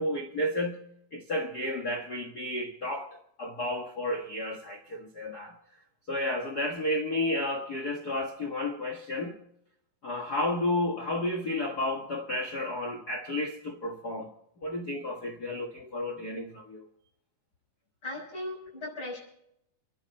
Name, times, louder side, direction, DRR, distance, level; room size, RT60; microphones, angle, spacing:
voice 1, 0.0-5.5 6.1-9.4 10.0-14.3 14.6-16.8, left 1 dB, 55° left, 1.1 m, -32 dB
voice 2, 18.0-19.2, left 1 dB, 35° left, 6.4 m, -37 dB
29.0 x 10.5 x 4.2 m
omnidirectional pair, 4.4 m